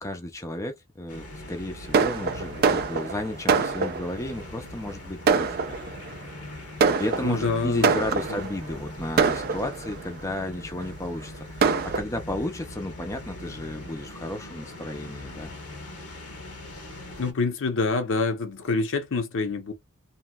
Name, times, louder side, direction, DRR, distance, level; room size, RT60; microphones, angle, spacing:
voice 1, 0.0-5.8 7.0-15.5, left 1 dB, 15° left, 0.5 m, -33 dB
sound 1, 1.1-17.3, left 1 dB, 85° left, 1.1 m, -41 dB
Fireworks, 1.9-4.3 4.9-5.0 5.3-6.1 6.8-8.6 9.2-10.1 10.8-10.9 11.2-11.3 11.6-12.0, right 5 dB, 45° right, 0.4 m, -24 dB
voice 2, 7.2-8.0 8.3-8.5 17.2-19.7, left 3 dB, 60° left, 0.7 m, -26 dB
2.9 x 2.6 x 2.3 m
head